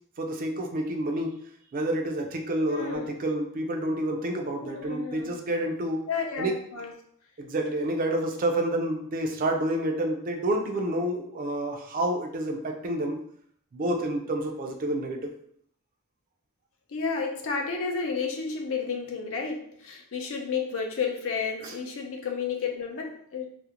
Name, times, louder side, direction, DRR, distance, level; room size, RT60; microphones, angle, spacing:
voice 1, 0.2-1.4 1.7-6.0 6.4-6.6 7.4-13.2 13.7-15.3 21.6-21.8, right 1 dB, 40° right, 3 dB, 0.4 m, -29 dB
voice 2, 2.7-3.1 4.6-5.4 6.1-6.9 16.9-23.5, left 5 dB, 65° left, 2 dB, 0.5 m, -31 dB
2.4 x 2.0 x 2.8 m, 0.66 s
head